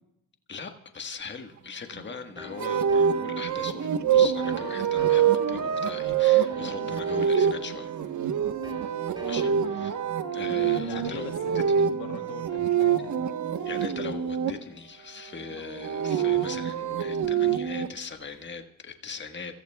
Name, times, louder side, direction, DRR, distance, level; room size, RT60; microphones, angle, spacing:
voice 1, 0.5-7.9 9.2-9.9 10.3-11.9 13.6-19.6, left 5 dB, 30° left, 6 dB, 1.5 m, -40 dB
sound 1, 2.4-12.8, left 2 dB, 10° right, 3.8 m, -47 dB
sound 2, 2.6-14.5 15.6-17.9, right 8 dB, 45° right, 1.2 m, -25 dB
voice 2, 10.8-13.3, left 9 dB, 85° left, 2 dB, 1.7 m, -42 dB
25.5 x 14.5 x 2.3 m, 0.83 s
supercardioid pair, 65°, 40 cm